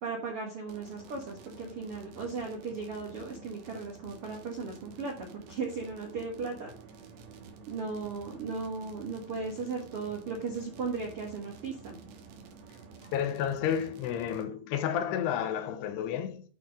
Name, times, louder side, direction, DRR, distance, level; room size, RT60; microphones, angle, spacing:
voice 1, 0.0-6.7 7.7-12.0, right 4 dB, 65° right, 1.3 m, -36 dB
sound 1, 0.7-14.4, right 4 dB, 90° right, 3.6 m, -50 dB
voice 2, 13.1-16.4, left 9 dB, 80° left, 2.8 m, -31 dB
11.5 x 4.3 x 5.0 m
omnidirectional pair, 4.8 m